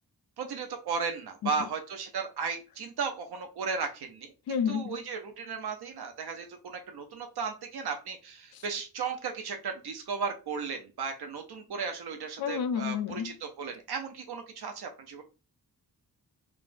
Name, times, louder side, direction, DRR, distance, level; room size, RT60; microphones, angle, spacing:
voice 1, 0.4-15.2, right 5 dB, 85° right, 0.6 m, -35 dB
voice 2, 4.5-5.0 12.4-13.3, left 8 dB, 70° left, 0.5 m, -30 dB
3.6 x 2.4 x 2.4 m
wide cardioid pair, 130°, 38 cm